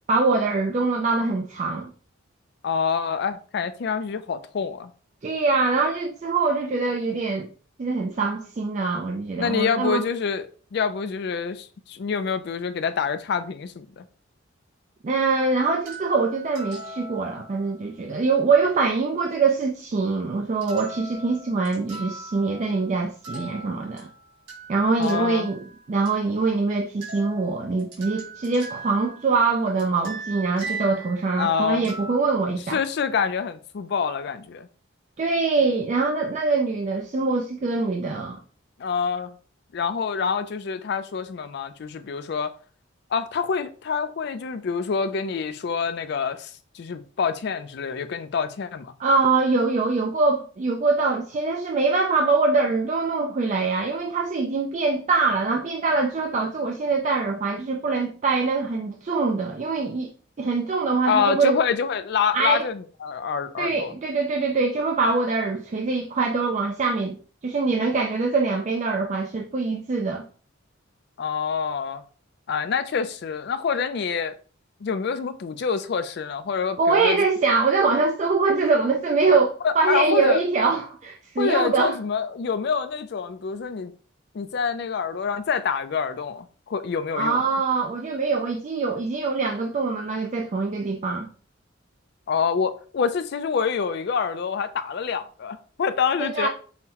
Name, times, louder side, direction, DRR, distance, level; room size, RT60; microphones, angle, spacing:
voice 1, 0.1-1.9 5.2-7.5 7.8-10.0 15.0-24.1 24.7-32.8 35.2-38.4 49.0-60.1 60.4-61.6 62.3-62.6 63.6-67.2 67.4-70.2 76.8-81.9 87.1-91.3 96.2-96.5, right 4 dB, 35° right, 0.3 m, -23 dB
voice 2, 2.6-4.9 9.4-14.1 25.0-25.5 31.4-31.9 32.7-34.7 38.8-39.3 39.7-42.5 43.1-48.9 61.1-63.9 71.2-72.0 72.5-74.3 74.8-77.3 79.6-80.4 81.4-83.9 84.3-87.5 92.3-96.5, left 6 dB, 55° left, 0.3 m, -26 dB
sound 1, 15.8-17.7 20.6-22.9 23.2-26.1 27.0-29.5 29.8-32.2, right 3 dB, 60° right, 2.0 m, -39 dB
5.5 x 2.1 x 2.8 m
head